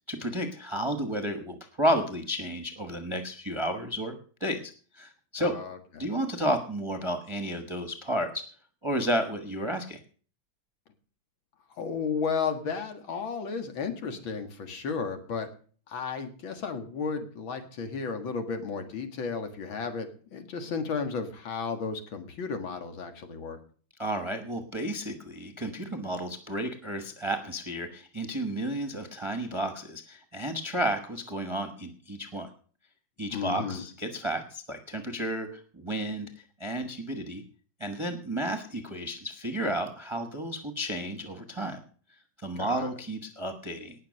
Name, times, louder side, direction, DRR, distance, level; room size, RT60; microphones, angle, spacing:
voice 1, 0.1-4.1 4.4-5.5 6.0-8.4 8.8-10.0 24.0-32.5 33.2-37.4 37.8-41.8 42.4-43.9, right 1 dB, 20° right, 5 dB, 1.0 m, -32 dB
voice 2, 5.4-6.1 11.8-15.5 15.9-23.6 33.3-33.8 42.6-42.9, left 5 dB, 90° left, 6 dB, 2.6 m, -33 dB
19.0 x 6.6 x 6.4 m, 0.42 s
omnidirectional pair, 2.1 m